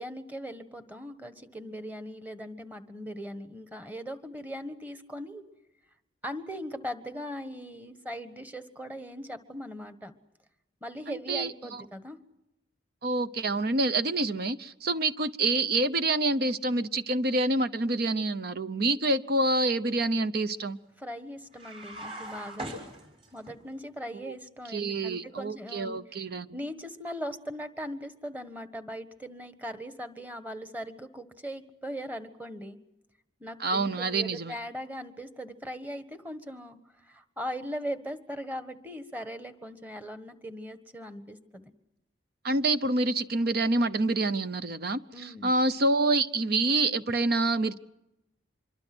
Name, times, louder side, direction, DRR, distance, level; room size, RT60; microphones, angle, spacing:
voice 1, 0.0-5.4 6.2-10.1 10.8-12.2 21.0-22.7 23.3-26.0 26.5-32.8 33.4-41.7 45.1-45.5, equal, 10° right, 9 dB, 1.5 m, -39 dB
voice 2, 11.1-11.8 13.0-20.8 24.2-24.3 24.7-26.5 33.6-34.5 42.4-47.8, right 2 dB, 50° right, 12 dB, 0.7 m, -27 dB
sound 1, 21.5-23.5, right 1 dB, 30° right, 6.1 m, -40 dB
26.0 x 23.5 x 6.2 m, 0.90 s
head